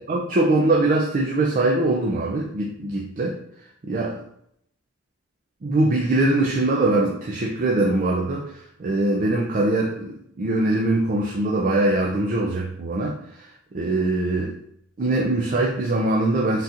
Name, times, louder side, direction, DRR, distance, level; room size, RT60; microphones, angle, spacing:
voice 1, 0.1-3.4 3.8-4.2 5.6-14.6 15.0-16.6, right 2 dB, 40° right, -1 dB, 0.4 m, -22 dB
3.7 x 2.8 x 2.4 m, 0.70 s
head